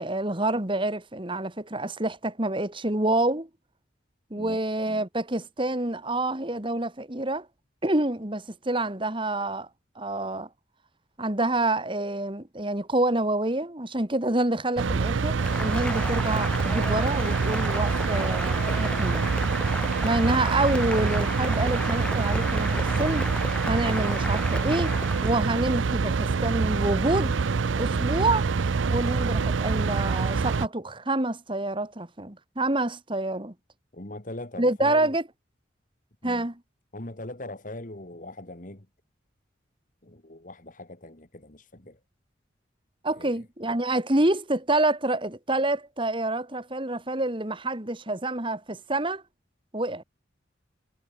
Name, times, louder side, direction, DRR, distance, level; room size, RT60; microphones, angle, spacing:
voice 1, 0.0-3.5 4.3-7.5 7.8-9.7 10.0-10.5 11.2-19.3 20.0-23.3 23.6-25.0 25.2-27.3 27.7-28.5 28.9-33.5 34.6-35.2 36.2-36.5 43.0-49.2 49.7-50.0, right 2 dB, 25° right, 2.2 m, -27 dB
sound 1, 14.8-30.7, right 4 dB, 80° right, 0.5 m, -26 dB
Cheering / Applause, 15.4-25.4, left 1 dB, 5° left, 0.5 m, -34 dB
voice 2, 33.9-35.2 36.2-36.5 36.9-38.9 40.0-42.0 43.2-43.5, left 1 dB, 45° left, 2.2 m, -40 dB
head